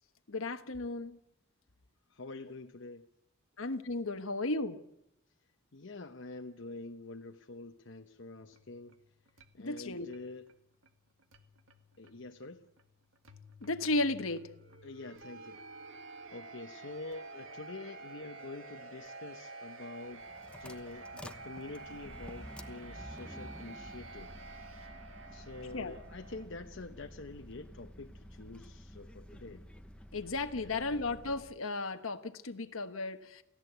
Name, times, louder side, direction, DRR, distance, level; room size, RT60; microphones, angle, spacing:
voice 1, 0.3-1.2 3.6-4.8 9.6-10.1 13.6-14.5 25.7-25.9 30.1-33.4, left 2 dB, 90° left, 7 dB, 1.3 m, -34 dB
voice 2, 2.1-3.1 5.7-9.0 9.5-10.4 12.0-12.7 14.8-15.6 16.3-20.3 20.6-24.9 25.3-29.6 30.6-31.1, left 2 dB, 65° left, 4 dB, 1.0 m, -47 dB
sound 1, 8.4-26.5, right 3 dB, 75° right, 2.0 m, -51 dB
sound 2, 20.1-31.6, equal, 5° left, 1.0 m, -51 dB
28.0 x 15.5 x 8.1 m, 0.85 s
head